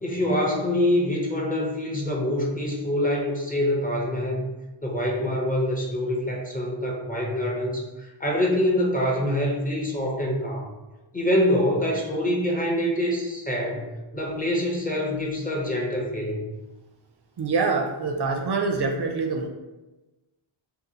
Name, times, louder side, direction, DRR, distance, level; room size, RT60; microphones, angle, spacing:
voice 1, 0.0-4.5 4.8-10.7 11.1-13.9 14.1-16.4, left 1 dB, 20° left, -3 dB, 0.6 m, -25 dB
voice 2, 17.4-19.5, right 4 dB, 60° right, 2 dB, 0.5 m, -25 dB
2.7 x 2.3 x 3.8 m, 1.1 s
wide cardioid pair, 115°, 47 cm